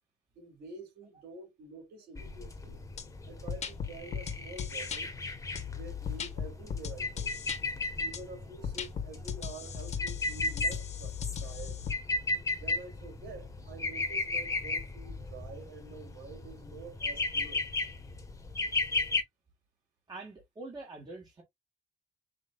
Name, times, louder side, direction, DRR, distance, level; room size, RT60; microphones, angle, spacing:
voice 1, 0.4-2.8 3.2-5.1 5.6-7.4 8.0-11.8 12.6-17.7, right 3 dB, 75° right, 3.8 m, -48 dB
sound 1, 2.1-19.2, left 3 dB, 20° left, 1.4 m, -35 dB
sound 2, 3.0-3.1 3.5-5.0 5.6-7.6 8.1-8.2 8.6-11.9, left 7 dB, 40° left, 1.4 m, -37 dB
voice 2, 20.1-21.4, right 2 dB, 25° right, 1.8 m, -44 dB
6.0 x 3.3 x 2.5 m
cardioid pair, 110°, 17 cm